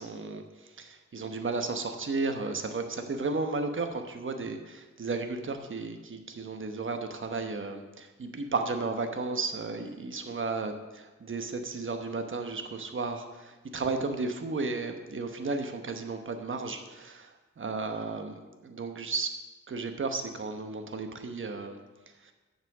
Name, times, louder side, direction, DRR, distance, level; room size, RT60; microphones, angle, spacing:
voice 1, 0.0-10.7 11.2-19.3 19.7-21.8 22.2-22.3, right 3 dB, 45° right, 6 dB, 1.1 m, -34 dB
7.8 x 5.9 x 7.2 m, 1.2 s
wide cardioid pair, 110°, 29 cm